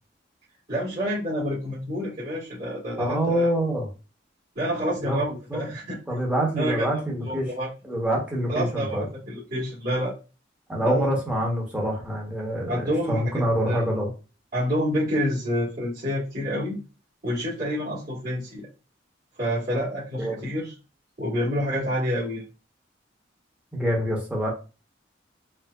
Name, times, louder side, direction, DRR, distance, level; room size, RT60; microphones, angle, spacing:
voice 1, 0.7-3.5 4.5-6.0 6.6-7.7 8.5-10.1 10.8-11.1 12.7-13.8 14.5-16.8 17.2-18.6 19.4-20.7 21.2-22.4, equal, 55° right, -12 dB, 1.6 m, -28 dB
voice 2, 3.0-3.9 5.0-5.6 6.1-7.5 7.8-9.1 10.7-14.1 20.2-20.4 23.7-24.5, equal, 5° right, -3 dB, 1.0 m, -26 dB
4.5 x 2.1 x 2.3 m, 0.32 s
head